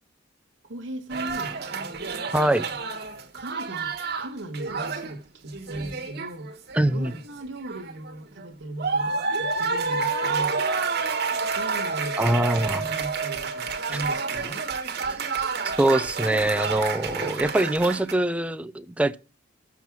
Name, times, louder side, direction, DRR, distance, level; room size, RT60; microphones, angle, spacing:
voice 1, 0.6-1.5 3.3-6.5 6.9-10.6 11.5-14.7, right 1 dB, 70° right, 1.4 m, -38 dB
sound 1, 1.1-5.1 5.5-7.2 7.6-8.4 8.8-18.1, right 4 dB, 50° right, 1.3 m, -29 dB
voice 2, 2.3-2.7 6.7-7.1 12.2-12.8 15.6-19.2, right 1 dB, 5° right, 0.3 m, -23 dB
7.0 x 6.0 x 6.0 m
head